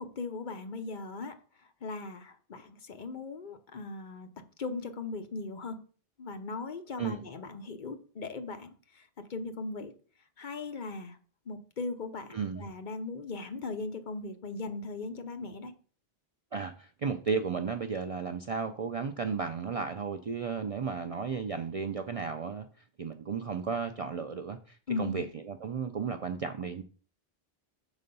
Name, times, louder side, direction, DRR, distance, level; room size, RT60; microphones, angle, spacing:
voice 1, 0.0-1.4 1.8-4.3 4.6-5.8 6.2-9.9 10.4-11.2 11.5-15.7 24.9-25.2, left 3 dB, 55° left, 7 dB, 0.9 m, -38 dB
voice 2, 12.3-12.7 16.5-22.7 23.0-26.8, right 5 dB, 50° right, 7 dB, 0.4 m, -34 dB
6.7 x 4.1 x 5.3 m, 0.41 s
omnidirectional pair, 1.0 m